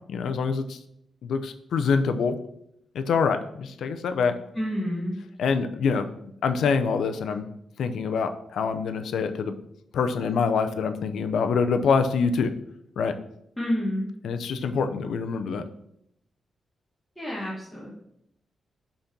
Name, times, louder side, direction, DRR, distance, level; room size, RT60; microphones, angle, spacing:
voice 1, 0.1-0.8 1.2-2.4 2.9-4.3 5.4-6.1 6.4-7.5 7.8-9.5 9.9-12.5 13.0-13.1 14.2-15.6, left 5 dB, 85° left, 8 dB, 0.6 m, -25 dB
voice 2, 4.5-5.1 13.6-14.1 17.2-17.9, equal, 10° left, -6 dB, 1.3 m, -29 dB
5.8 x 4.2 x 5.3 m, 0.75 s
wide cardioid pair, 135°, 0 cm